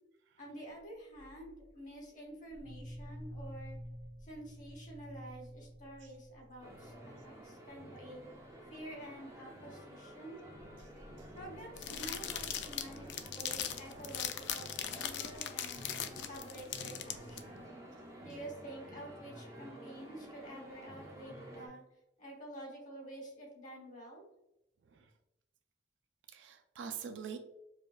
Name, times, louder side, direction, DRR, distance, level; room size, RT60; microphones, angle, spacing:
voice 1, 0.4-3.8 4.2-8.2 8.7-10.4 11.3-15.9 16.3-17.7 18.2-21.8 22.2-24.2, right 1 dB, 45° left, 0 dB, 1.1 m, -49 dB
sound 1, 1.2-1.6 2.5-7.0 7.3-7.5 7.8-8.1 8.3-8.6 9.3-9.4 10.4-13.6, equal, 90° left, 1.0 m, -51 dB
sound 2, 6.6-21.7, equal, 15° right, 0.5 m, -51 dB
sound 3, 11.8-17.4, left 9 dB, 65° left, 0.3 m, -39 dB
voice 2, 26.3-27.4, right 7 dB, 70° right, 7 dB, 0.3 m, -45 dB
4.9 x 2.4 x 2.3 m, 0.89 s
head